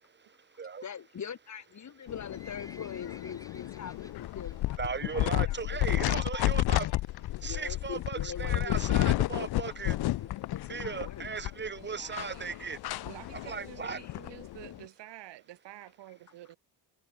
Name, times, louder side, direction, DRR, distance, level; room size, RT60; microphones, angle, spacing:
voice 1, 0.8-7.0 7.4-8.8 9.8-11.3 13.8-14.1, left 7 dB, 40° left, 1.5 m, -43 dB
Livestock farm animals working animals, 1.9-4.6 4.9-5.2 5.5-5.6 6.3-6.4 6.7-6.8 7.0-7.1 7.6-7.9 8.4-8.5 8.8-8.9 9.0-9.1 9.3-9.4 9.9-10.0 10.5-10.6 11.0-11.1, left 1 dB, 10° left, 6.7 m, -54 dB
sound 1, 2.1-14.8, left 16 dB, 65° left, 0.6 m, -32 dB
voice 2, 4.8-6.8 7.4-9.9 10.7-12.8 13.4-14.0, right 5 dB, 25° right, 1.0 m, -37 dB
voice 3, 11.8-16.6, right 14 dB, 85° right, 1.7 m, -50 dB
cardioid pair, 95°, 41 cm